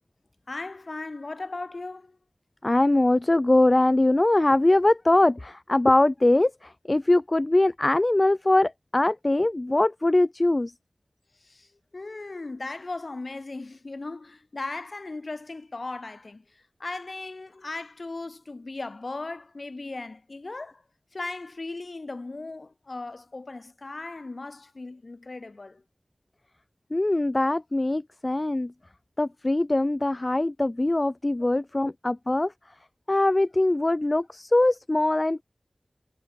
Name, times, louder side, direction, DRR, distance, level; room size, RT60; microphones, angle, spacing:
voice 1, 0.5-2.2 11.3-20.8 21.1-25.8 31.4-31.5, left 3 dB, 55° left, 4.1 m, -37 dB
voice 2, 2.6-10.7 26.9-28.7 29.2-32.5 33.1-35.4, left 2 dB, 35° left, 0.4 m, -22 dB
wide cardioid pair, 60°, 0 cm